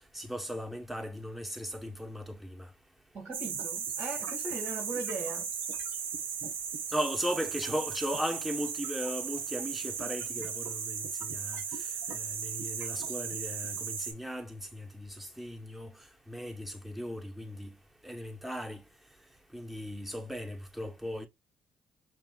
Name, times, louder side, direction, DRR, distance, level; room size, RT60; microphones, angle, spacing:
voice 1, 0.1-2.7 6.9-11.6 12.1-15.1 15.4-15.9 16.3-17.7 18.0-18.8 19.5-21.3, equal, 5° right, 1.1 m, -37 dB
voice 2, 3.1-5.4, right 3 dB, 65° right, 2.0 m, -39 dB
sound 1, 3.3-14.1, right 7 dB, 85° right, 1.1 m, -36 dB
5.9 x 2.5 x 2.4 m
supercardioid pair, 60°, 4 cm